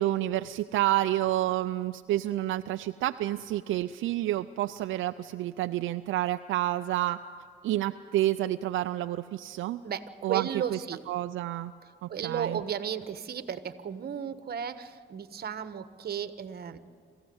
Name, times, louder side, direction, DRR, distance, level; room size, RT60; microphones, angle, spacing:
voice 1, 0.0-7.2 7.6-9.8 10.2-11.7 12.0-12.6, right 14 dB, 80° right, 9 dB, 0.5 m, -29 dB
voice 2, 9.8-11.0 12.1-16.8, right 8 dB, 50° right, 11 dB, 1.3 m, -34 dB
27.0 x 15.0 x 7.9 m, 2.2 s
cardioid pair, 90°, 20 cm